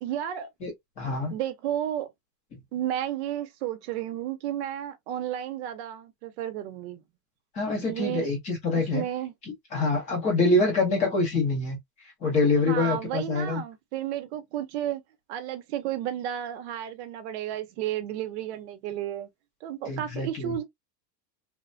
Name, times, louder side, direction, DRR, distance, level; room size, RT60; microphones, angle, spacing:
voice 1, 0.0-0.5 1.3-2.1 2.7-7.0 7.9-8.3 8.7-9.3 12.6-15.0 15.3-19.3 19.6-20.6, right 11 dB, 40° right, 0.6 m, -32 dB
voice 2, 1.0-1.3 7.6-9.0 9.7-11.8 12.2-13.6 19.9-20.5, left 3 dB, 15° left, 0.5 m, -25 dB
3.2 x 2.1 x 2.5 m
supercardioid pair, 170°, 50 cm